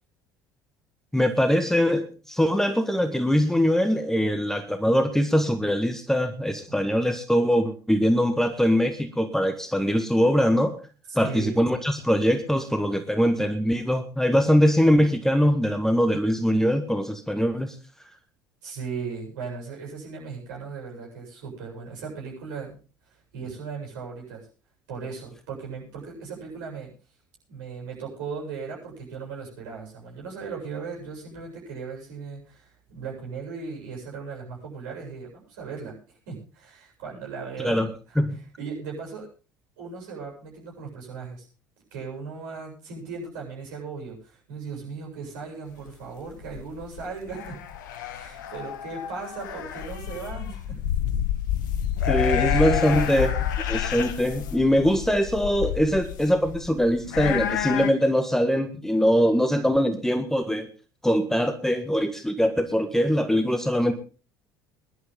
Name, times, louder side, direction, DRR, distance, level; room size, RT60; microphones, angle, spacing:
voice 1, 1.1-10.7 11.1-17.7 37.6-37.9 38.2-38.4 52.1-53.4 53.7-60.7 61.0-63.9, equal, 5° left, 9 dB, 1.6 m, -22 dB
voice 2, 11.1-11.6 18.6-22.8 23.3-24.5 24.9-26.9 27.5-36.0 36.3-37.8 38.1-38.2 38.6-39.3 39.8-41.5 41.9-47.6 48.1-50.8 52.0-52.2, right 5 dB, 65° right, -1 dB, 7.7 m, -37 dB
sound 1, 46.3-57.9, left 9 dB, 65° left, 1.1 m, -29 dB
21.5 x 11.5 x 3.8 m, 0.34 s
figure-of-eight pair, 60°, 11 cm